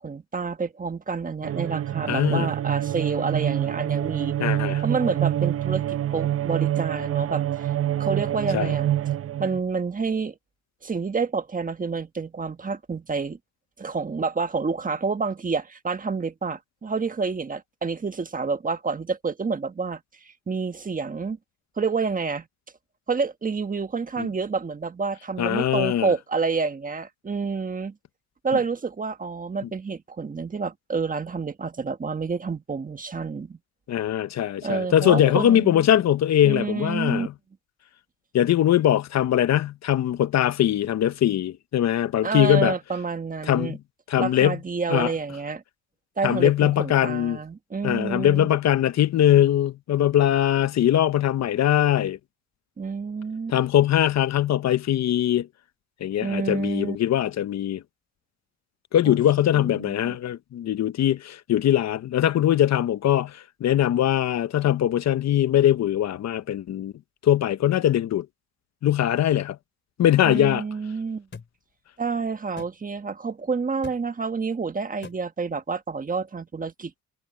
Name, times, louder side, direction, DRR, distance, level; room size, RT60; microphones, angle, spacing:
voice 1, 0.0-4.3 4.8-7.7 8.0-8.9 9.4-10.3 10.8-13.4 13.8-21.4 21.8-22.5 23.1-27.9 28.4-33.6 34.6-35.8 36.4-37.3 42.2-43.8 44.2-45.6 46.2-48.5 52.8-53.5 56.2-57.0 59.0-59.2 59.5-60.2 70.2-71.3 72.0-77.0, right 4 dB, 25° right, 1.4 m, -28 dB
sound 1, 1.4-9.6, right 12 dB, 50° right, 0.8 m, -26 dB
voice 2, 2.1-2.5 4.4-4.8 8.5-8.7 24.2-24.3 25.4-26.1 33.9-37.3 38.3-42.7 43.4-43.8 44.1-44.6 44.9-45.1 46.2-47.4 47.8-52.2 53.5-55.5 56.0-57.8 58.9-66.9 67.2-68.3 68.8-69.6 70.0-70.6, left 11 dB, 60° left, 0.9 m, -21 dB
sound 2, 71.3-71.5 72.6-72.7 73.8-74.0 75.0-75.2, left 5 dB, 40° left, 3.6 m, -41 dB
cardioid pair, 90°, 30 cm